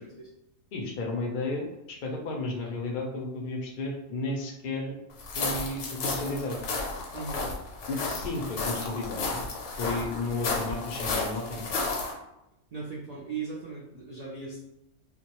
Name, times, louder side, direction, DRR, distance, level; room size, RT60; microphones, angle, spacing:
voice 1, 0.7-5.0 5.3-6.6 7.9-9.4 9.8-11.9, left 2 dB, 60° left, 1 dB, 0.6 m, -33 dB
sound 1, 5.2-12.1, left 3 dB, 80° left, 0.9 m, -32 dB
voice 2, 7.1-7.5 12.7-14.6, right 5 dB, 60° right, -5 dB, 0.4 m, -38 dB
2.2 x 2.0 x 2.9 m, 0.87 s
omnidirectional pair, 1.2 m